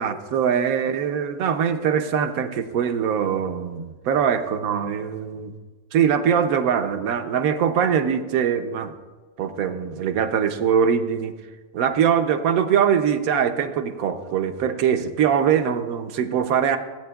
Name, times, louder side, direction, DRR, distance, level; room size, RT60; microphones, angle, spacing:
voice 1, 0.0-5.5 5.9-8.9 9.4-11.3 11.7-16.8, right 8 dB, 70° right, 8 dB, 1.1 m, -22 dB
16.5 x 8.5 x 2.3 m, 1.3 s
omnidirectional pair, 1.7 m